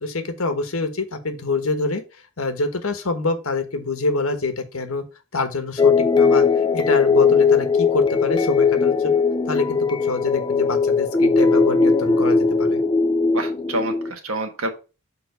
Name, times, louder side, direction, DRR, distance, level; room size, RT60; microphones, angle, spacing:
voice 1, 0.0-2.0 2.4-5.0 5.3-9.2 9.4-12.8, left 3 dB, 80° left, 7 dB, 1.3 m, -26 dB
sound 1, 5.8-14.1, left 4 dB, 20° left, 0.4 m, -19 dB
voice 2, 13.3-14.7, right 1 dB, 80° right, 5 dB, 1.5 m, -27 dB
6.8 x 3.8 x 5.1 m, 0.30 s
head